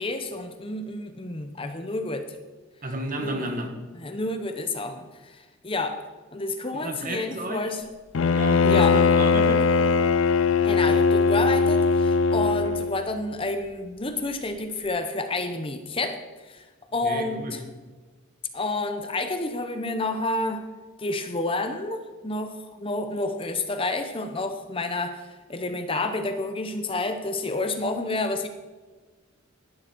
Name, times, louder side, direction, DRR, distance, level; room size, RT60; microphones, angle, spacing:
voice 1, 0.0-2.3 3.2-3.5 3.9-6.0 6.3-7.8 8.7-9.0 10.6-16.6 16.9-17.6 18.5-20.6 21.0-28.5, left 2 dB, 25° left, 7 dB, 0.9 m, -29 dB
voice 2, 2.8-3.7 6.7-7.7 8.3-9.7 17.0-17.5, right 1 dB, 40° right, 4 dB, 1.9 m, -31 dB
Bowed string instrument, 8.1-13.0, left 4 dB, 65° left, 0.5 m, -20 dB
17.0 x 11.5 x 4.6 m, 1.3 s
head